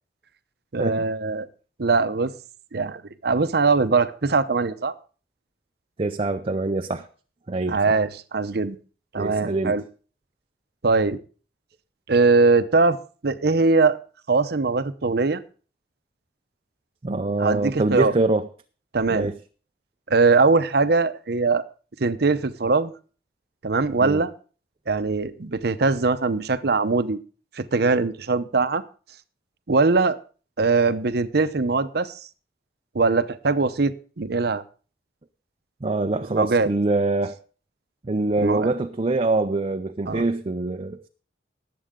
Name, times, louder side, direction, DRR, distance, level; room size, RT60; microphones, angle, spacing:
voice 1, 0.7-1.5 1.8-2.3 2.7-4.9 7.7-8.8 9.1-9.8 10.8-11.2 12.1-13.0 13.2-14.0 14.3-15.4 17.4-18.2 18.9-19.3 20.1-21.7 22.0-22.9 23.6-24.3 24.9-27.2 27.5-28.8 29.7-30.2 30.6-32.1 32.9-34.6 36.3-36.7 38.4-38.7 40.1-40.3, right 3 dB, 60° right, 0.7 m, -21 dB
voice 2, 6.0-7.1 7.5-7.8 9.2-9.8 17.0-18.5 19.1-19.3 24.0-24.2 35.8-37.4 38.0-41.1, right 2 dB, 35° right, 0.5 m, -24 dB
19.0 x 7.7 x 3.7 m
head